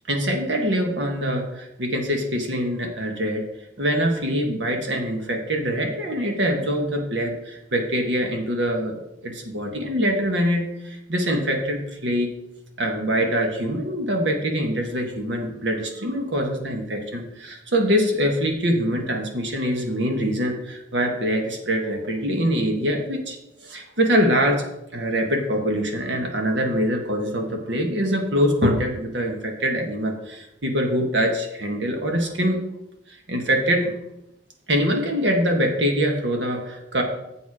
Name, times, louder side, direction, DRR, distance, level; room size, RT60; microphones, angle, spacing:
voice 1, 0.1-3.4 3.8-9.0 9.2-12.3 12.8-23.4 23.6-32.6 33.3-33.9 34.7-37.0, equal, 75° right, 2 dB, 1.6 m, -24 dB
8.0 x 7.2 x 5.0 m, 0.87 s
head